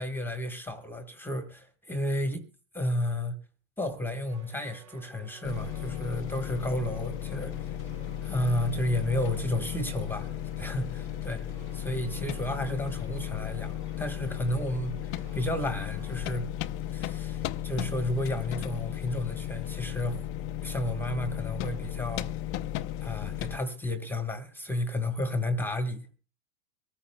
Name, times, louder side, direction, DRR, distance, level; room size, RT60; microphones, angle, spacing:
voice 1, 0.0-2.4 2.7-3.3 3.8-7.8 8.2-11.5 11.7-16.5 16.9-20.3 20.6-22.3 23.0-26.1, left 1 dB, 5° left, 1.3 m, -32 dB
sound 1, 4.3-16.3, right 8 dB, 40° right, 4.4 m, -55 dB
sound 2, 5.4-23.6, left 11 dB, 35° left, 0.5 m, -35 dB
24.0 x 14.0 x 2.2 m
supercardioid pair, 130°, 39 cm